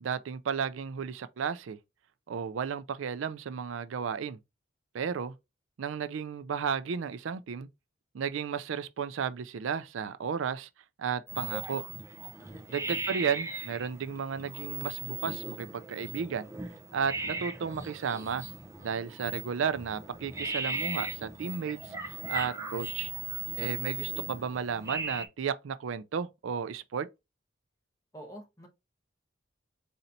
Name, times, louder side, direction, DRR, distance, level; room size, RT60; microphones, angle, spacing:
voice 1, 0.0-1.8 2.3-4.4 4.9-5.3 5.8-7.7 8.1-10.7 11.0-11.8 12.7-16.5 16.9-18.4 18.8-23.1 23.6-27.1, right 6 dB, 80° right, 0.4 m, -33 dB
sound 1, 11.3-25.3, right 3 dB, 15° right, 0.5 m, -38 dB
voice 2, 12.4-13.0 28.1-28.7, right 1 dB, 15° left, 1.1 m, -48 dB
4.2 x 2.7 x 3.9 m
head